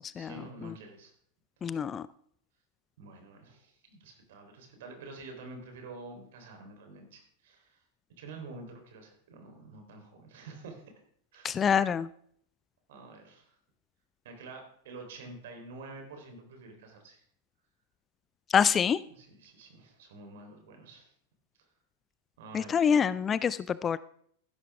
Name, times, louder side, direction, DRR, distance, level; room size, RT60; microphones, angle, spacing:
voice 1, 0.2-1.1 3.0-7.8 8.2-10.8 11.3-11.6 12.9-13.5 14.2-17.2 19.1-21.1 22.4-22.9, right 3 dB, 55° right, 4 dB, 3.8 m, -48 dB
voice 2, 1.6-2.1 11.4-12.1 18.5-19.0 22.5-24.0, left 7 dB, 20° left, 18 dB, 0.4 m, -26 dB
15.0 x 11.5 x 3.5 m, 0.64 s
figure-of-eight pair, 90°, 0 cm